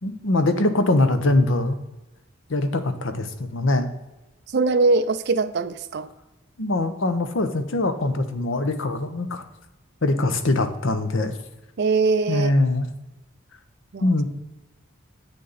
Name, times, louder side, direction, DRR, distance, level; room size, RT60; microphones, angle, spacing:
voice 1, 0.0-1.8 2.5-3.9 6.6-9.4 10.0-11.3 12.3-12.9 14.0-14.2, left 2 dB, 65° left, 9 dB, 0.9 m, -22 dB
voice 2, 4.5-6.1 11.8-12.5 13.9-14.2, right 3 dB, 55° right, 9 dB, 0.4 m, -22 dB
8.3 x 6.8 x 4.1 m, 1.0 s
head